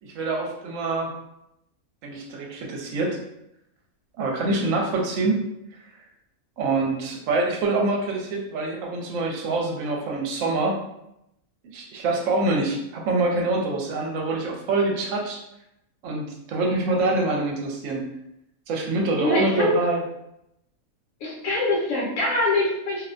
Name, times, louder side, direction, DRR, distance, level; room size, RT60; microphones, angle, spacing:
voice 1, 0.0-1.1 2.0-3.2 4.2-5.4 6.6-10.8 11.7-15.4 16.0-18.1 18.7-20.0, right 2 dB, 70° right, 0 dB, 0.9 m, -25 dB
voice 2, 19.2-19.8 21.2-23.0, left 2 dB, 70° left, -4 dB, 1.1 m, -24 dB
2.6 x 2.1 x 2.4 m, 0.82 s
omnidirectional pair, 1.5 m